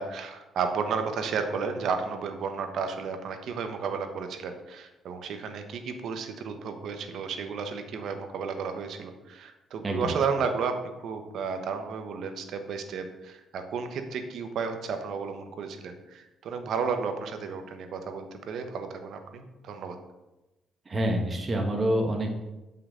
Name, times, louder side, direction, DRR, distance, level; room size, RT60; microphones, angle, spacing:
voice 1, 0.0-20.0, right 5 dB, 70° right, 7 dB, 0.9 m, -33 dB
voice 2, 9.8-10.2 20.9-22.4, right 1 dB, 35° right, 2 dB, 1.2 m, -27 dB
8.0 x 5.7 x 3.7 m, 1.0 s
cardioid pair, 90°, 0 cm